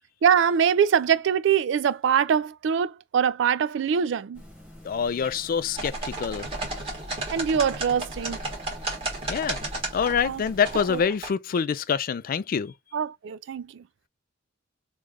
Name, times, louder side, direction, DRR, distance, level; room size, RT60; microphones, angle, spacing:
voice 1, 0.2-4.4 7.3-8.4 10.2-10.4 10.9-11.0 12.9-13.8, right 7 dB, 65° right, 0.3 m, -23 dB
sound 1, 4.3-11.1, left 1 dB, 5° right, 1.2 m, -47 dB
voice 2, 4.8-6.5 9.3-9.6 9.9-12.7, left 6 dB, 45° left, 0.3 m, -26 dB
sound 2, 5.7-11.3, right 2 dB, 30° right, 1.5 m, -33 dB
3.2 x 2.3 x 3.5 m
head